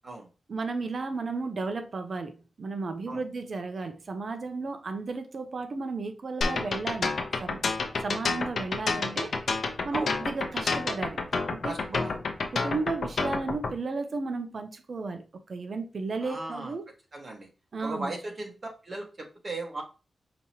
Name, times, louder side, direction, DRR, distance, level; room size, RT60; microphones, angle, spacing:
voice 1, 0.5-7.7 8.0-9.4 9.8-11.2 11.5-12.0 12.5-16.9 17.7-18.1, right 3 dB, 55° right, 0.6 m, -34 dB
sound 1, 6.4-13.7, left 4 dB, 65° left, 0.7 m, -29 dB
voice 2, 11.6-12.1 16.2-16.7 17.1-17.5 17.8-18.5 18.8-19.8, right 2 dB, 40° right, 1.4 m, -36 dB
5.2 x 2.9 x 2.9 m
wide cardioid pair, 110°, 0 cm